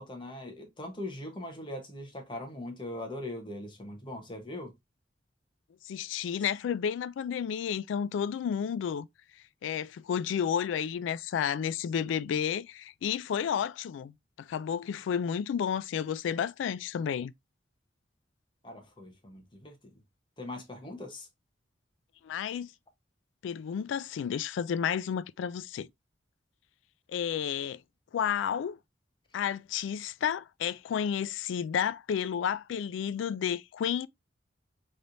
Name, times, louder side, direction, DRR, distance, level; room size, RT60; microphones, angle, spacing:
voice 1, 0.0-4.7 18.6-19.9 20.4-21.3, left 1 dB, 25° left, 0.9 m, -41 dB
voice 2, 5.8-9.1 9.6-17.3 22.2-22.7 23.4-25.9 27.1-27.8 28.1-28.8 29.3-34.1, left 8 dB, 85° left, 0.3 m, -31 dB
4.2 x 3.3 x 2.5 m
head